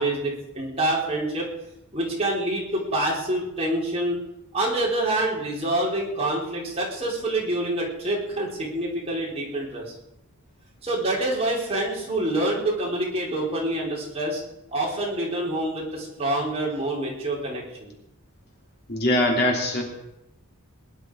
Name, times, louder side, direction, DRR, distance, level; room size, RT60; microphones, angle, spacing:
voice 1, 0.0-1.5 1.9-4.2 4.5-9.9 10.8-14.4 14.7-17.9, right 1 dB, 30° right, -3 dB, 4.0 m, -26 dB
voice 2, 18.9-19.8, left 1 dB, 45° left, 0 dB, 3.1 m, -22 dB
21.0 x 11.0 x 4.8 m, 0.85 s
head